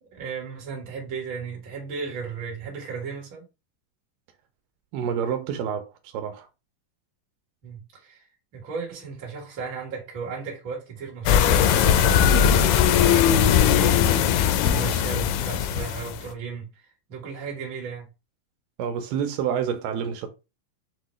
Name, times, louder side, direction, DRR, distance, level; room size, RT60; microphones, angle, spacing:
voice 1, 0.0-3.5 7.6-8.2 8.5-18.1, right 5 dB, 45° right, 1.7 m, -35 dB
voice 2, 4.9-6.5 18.8-20.3, right 8 dB, 85° right, 2.3 m, -28 dB
sound 1, 11.3-16.2, left 9 dB, 80° left, 1.9 m, -19 dB
6.4 x 2.2 x 3.0 m
omnidirectional pair, 4.0 m